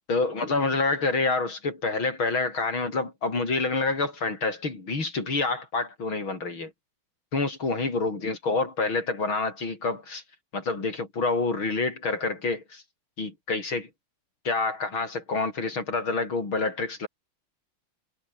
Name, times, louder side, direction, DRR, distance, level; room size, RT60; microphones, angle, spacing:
voice 1, 0.1-6.7 7.3-10.2 10.5-12.8 13.2-13.9 14.4-17.1, left 3 dB, 70° left, 5.9 m, -27 dB
omnidirectional pair, 2.3 m